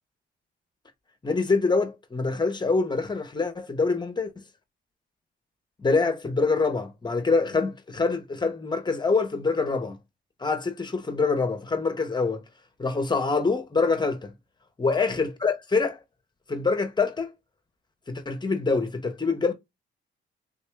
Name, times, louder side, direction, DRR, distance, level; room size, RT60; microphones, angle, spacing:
voice 1, 1.2-4.3 5.8-10.0 10.4-12.4 12.8-14.3 14.8-16.0 16.5-17.3 18.1-19.5, left 4 dB, 20° left, 0.7 m, -25 dB
3.6 x 2.2 x 3.1 m
cardioid pair, 90°, 20 cm